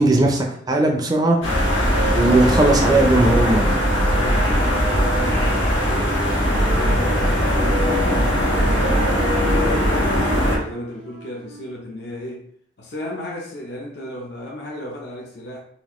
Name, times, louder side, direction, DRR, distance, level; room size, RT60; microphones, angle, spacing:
voice 1, 0.0-1.4 2.1-3.7, right 2 dB, 20° right, 1 dB, 0.5 m, -17 dB
sound 1, 1.4-10.6, equal, 80° left, 1.3 m, -19 dB
voice 2, 3.4-6.2 6.6-9.1 9.6-12.5 12.8-15.6, left 1 dB, 60° left, -2 dB, 0.6 m, -34 dB
Wind instrument woodwind instrument, 5.4-8.1 8.5-11.7, right 3 dB, 90° right, 0.8 m, -36 dB
4.1 x 2.5 x 3.0 m, 0.63 s
head